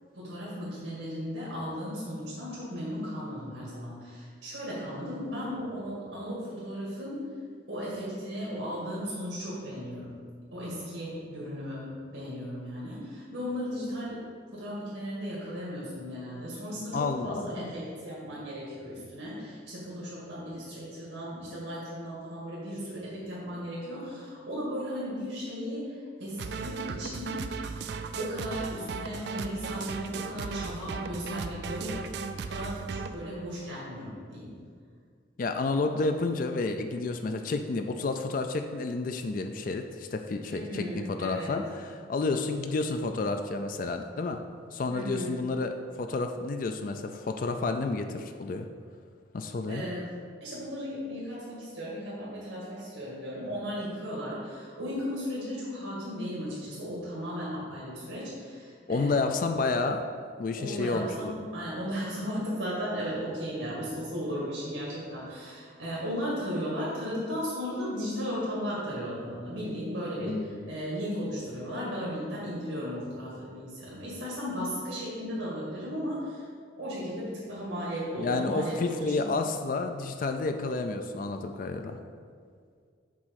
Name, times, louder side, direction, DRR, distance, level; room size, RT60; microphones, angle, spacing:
voice 1, 0.1-7.2 7.7-10.1 10.5-14.2 14.5-27.3 28.2-32.0 32.5-34.5 40.5-41.6 44.9-45.4 49.7-50.1 50.4-59.2 60.6-76.5 76.8-79.3, equal, 85° right, -7 dB, 2.0 m, -36 dB
voice 2, 16.9-17.7 35.4-44.4 44.7-48.7 49.3-49.9 58.9-60.0 60.4-61.4 70.3-70.7 78.2-82.0, left 3 dB, 45° left, 6 dB, 0.3 m, -30 dB
sound 1, 26.4-33.1, right 5 dB, 55° right, 0.3 m, -36 dB
6.1 x 4.2 x 6.4 m, 2.1 s
head